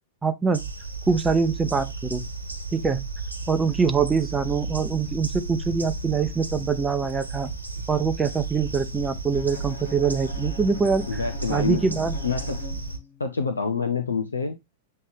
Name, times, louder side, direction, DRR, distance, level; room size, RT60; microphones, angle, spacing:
voice 1, 0.2-0.6 1.1-2.3 2.7-3.1 3.5-7.5 7.9-11.2 11.5-12.2, right 5 dB, 10° right, 0.7 m, -24 dB
sound 1, 0.5-13.0, right 4 dB, 85° right, 1.4 m, -33 dB
sound 2, 3.4-13.0, left 10 dB, 40° left, 3.4 m, -47 dB
Bowed string instrument, 9.3-13.4, left 5 dB, 60° left, 1.5 m, -42 dB
voice 2, 11.1-11.8 12.2-12.6 13.2-14.6, left 5 dB, 75° left, 0.9 m, -27 dB
8.1 x 3.3 x 3.5 m
figure-of-eight pair, 100°, 0 cm